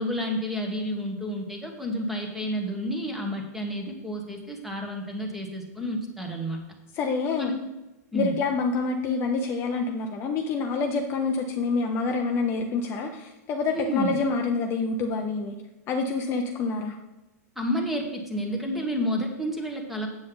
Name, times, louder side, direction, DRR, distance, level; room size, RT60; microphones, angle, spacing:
voice 1, 0.0-6.6 7.4-7.5 8.1-8.3 13.7-14.1 17.6-20.1, equal, ahead, 2 dB, 1.2 m, -30 dB
voice 2, 6.9-7.5 8.1-15.5 15.9-17.0, left 4 dB, 25° left, 3 dB, 0.6 m, -27 dB
8.0 x 7.5 x 3.9 m, 1.0 s
supercardioid pair, 155°, 9 cm